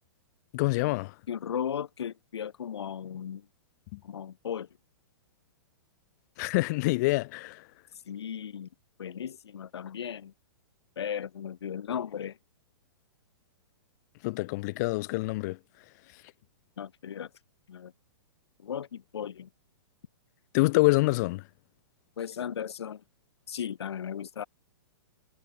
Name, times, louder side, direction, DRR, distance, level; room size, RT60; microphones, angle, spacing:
voice 1, 0.5-1.1 3.9-4.0 6.4-7.6 14.2-15.6 20.5-21.4, left 22 dB, 45° left, 0.6 m, -26 dB
voice 2, 1.3-3.4 4.0-4.7 8.1-8.7 9.0-10.3 11.0-12.4 16.8-17.3 17.7-17.9 18.6-19.5 22.2-23.0 23.5-24.4, left 8 dB, 85° left, 1.7 m, -36 dB
hypercardioid pair, 140°, 13 cm